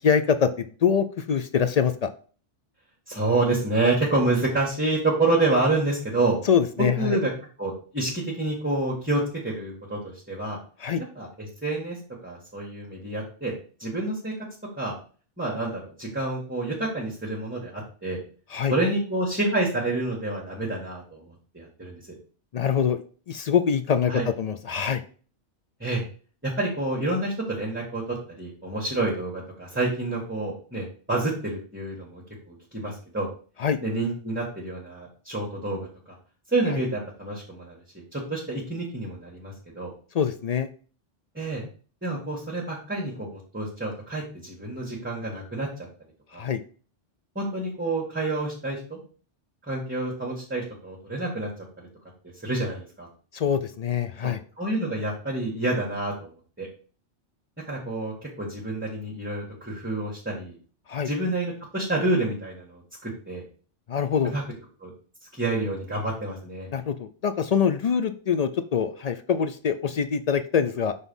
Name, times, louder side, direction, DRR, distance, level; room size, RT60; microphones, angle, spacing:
voice 1, 0.0-2.1 6.5-7.2 10.8-11.0 18.5-18.7 22.5-23.0 23.3-25.0 33.6-33.8 40.1-40.7 46.3-46.6 53.3-54.4 60.9-61.1 63.9-64.3 66.7-70.9, left 7 dB, 65° left, 9 dB, 0.3 m, -24 dB
voice 2, 3.1-6.4 7.0-7.3 7.6-10.6 11.1-12.0 12.2-13.5 13.8-14.3 14.8-14.9 15.4-18.2 18.7-22.0 24.1-24.3 25.8-26.0 26.4-33.3 33.8-35.9 36.5-37.8 38.1-39.9 41.3-41.6 42.0-45.7 46.3-46.4 47.3-49.0 49.6-51.5 52.4-53.1 54.2-56.3 56.6-56.7 57.6-60.6 61.0-63.4 64.2-64.4 64.8-64.9 65.3-66.7, right 2 dB, 10° right, -4 dB, 1.5 m, -28 dB
6.1 x 3.7 x 5.3 m, 0.40 s
omnidirectional pair, 1.2 m